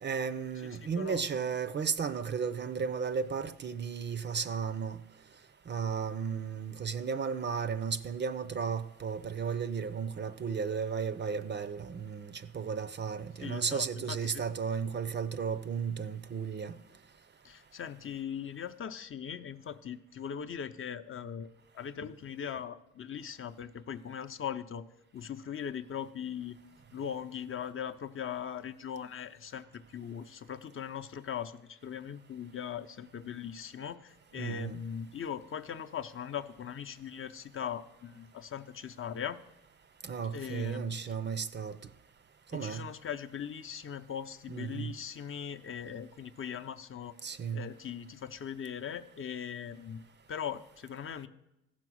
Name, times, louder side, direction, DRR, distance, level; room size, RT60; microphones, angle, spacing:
voice 1, 0.0-5.0 5.7-16.8 34.4-34.8 40.0-41.8 42.5-42.8 44.5-44.9 47.2-47.6, right 6 dB, 35° right, 0.5 m, -34 dB
voice 2, 0.6-1.2 13.4-14.4 17.4-21.5 21.7-24.8 25.1-26.6 26.9-39.4 40.3-41.0 42.5-47.1 47.5-50.0 50.3-51.3, left 8 dB, 45° left, 0.6 m, -40 dB
14.5 x 6.0 x 6.2 m
cardioid pair, 90°, 30 cm